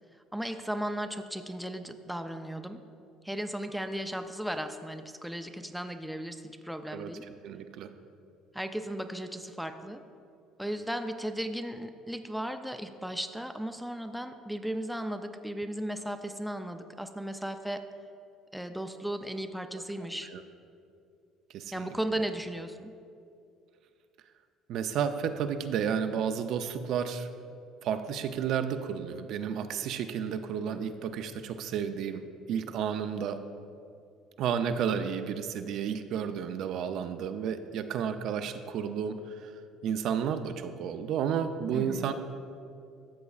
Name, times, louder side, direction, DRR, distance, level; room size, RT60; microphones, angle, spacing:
voice 1, 0.1-2.8 3.2-7.2 8.5-10.0 10.6-17.9 18.5-20.3 21.7-22.9 41.7-42.1, right 1 dB, ahead, 7 dB, 0.4 m, -36 dB
voice 2, 7.4-7.9 20.3-20.4 21.5-21.9 24.7-27.3 27.8-33.5 34.4-39.5 39.8-42.1, right 7 dB, 65° right, 8 dB, 0.4 m, -32 dB
13.0 x 6.9 x 2.4 m, 2.4 s
cardioid pair, 115°, 0 cm